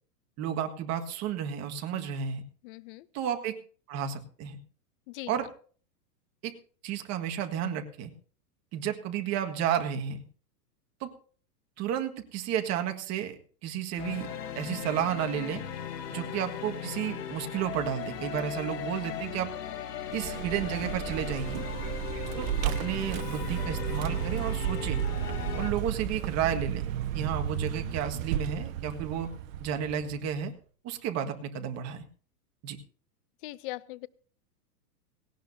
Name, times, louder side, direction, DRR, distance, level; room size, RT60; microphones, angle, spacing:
voice 1, 0.4-2.4 3.1-3.6 3.9-4.6 5.3-5.5 6.4-6.5 6.8-8.1 8.7-10.2 11.0-11.1 11.8-14.3 14.5-15.6 16.1-19.5 20.1-21.6 22.4-25.0 25.6-26.9 27.1-29.3 29.6-30.5 30.8-32.0 32.6-32.8, right 9 dB, 35° right, 5 dB, 1.8 m, -32 dB
voice 2, 2.6-3.1 5.1-5.3 33.4-34.1, left 19 dB, 35° left, 19 dB, 0.5 m, -40 dB
sound 1, 14.0-25.7, left 8 dB, 85° left, 3.3 m, -38 dB
Vehicle, 20.0-30.4, right 10 dB, 55° right, 1.4 m, -33 dB
17.5 x 17.5 x 2.8 m, 0.43 s
hypercardioid pair, 135°, 48 cm